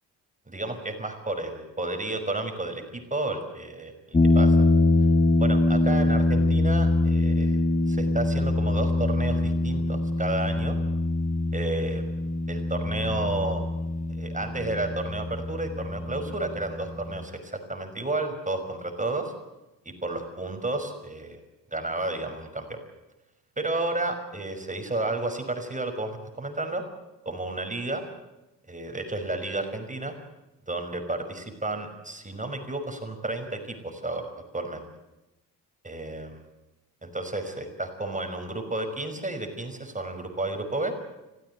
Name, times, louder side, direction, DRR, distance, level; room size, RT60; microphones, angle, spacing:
voice 1, 0.5-4.6 5.4-7.6 7.9-10.8 11.5-12.0 12.5-13.6 14.2-19.3 19.8-21.4 21.7-22.8 23.6-26.8 27.3-28.0 28.7-30.1 30.7-34.2 34.5-34.8 35.8-36.4 37.0-40.9, right 2 dB, 15° right, 6 dB, 5.7 m, -32 dB
sound 1, 4.1-17.2, left 2 dB, 15° left, 1.5 m, -24 dB
26.0 x 16.0 x 8.3 m, 0.97 s
figure-of-eight pair, 45°, 48 cm